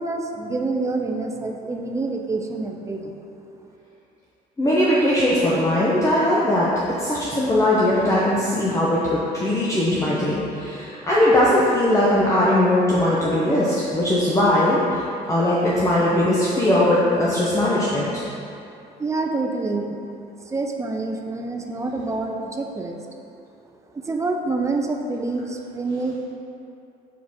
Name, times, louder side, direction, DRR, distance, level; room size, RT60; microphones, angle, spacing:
voice 1, 0.0-3.2 19.0-20.0 20.4-23.2 23.9-26.2, right 3 dB, 15° right, 3 dB, 0.6 m, -27 dB
voice 2, 4.6-6.7 7.0-15.0 15.3-18.2, left 1 dB, 20° left, -7 dB, 0.9 m, -20 dB
6.0 x 5.0 x 3.6 m, 2.6 s
cardioid pair, 110°, 17 cm